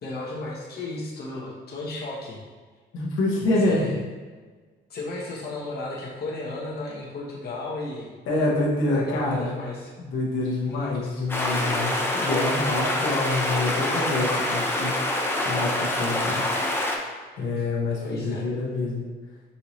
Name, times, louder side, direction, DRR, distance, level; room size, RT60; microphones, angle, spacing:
voice 1, 0.0-2.4 3.6-4.0 4.9-8.1 8.9-9.9 10.6-11.1 18.0-18.5, left 2 dB, 55° left, -4 dB, 1.0 m, -34 dB
voice 2, 2.9-3.9 8.3-9.6 10.0-14.9 15.4-16.4 17.4-19.0, left 2 dB, 80° left, -5 dB, 1.1 m, -26 dB
sound 1, 11.3-17.0, left 1 dB, 10° left, 0.6 m, -26 dB
5.4 x 2.7 x 3.1 m, 1.4 s
cardioid pair, 90°, 20 cm